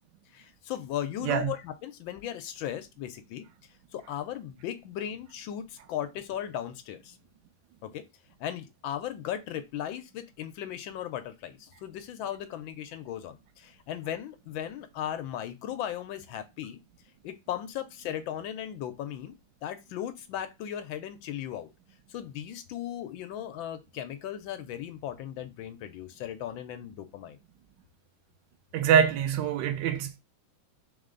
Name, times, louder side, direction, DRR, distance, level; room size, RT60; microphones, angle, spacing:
voice 1, 0.3-3.4 3.9-7.2 7.8-8.0 8.4-16.8 17.2-19.3 19.6-21.7 22.1-27.4, left 10 dB, 75° left, 1.3 m, -37 dB
voice 2, 28.7-30.2, right 8 dB, 70° right, 1.2 m, -24 dB
3.6 x 3.2 x 3.7 m
omnidirectional pair, 2.3 m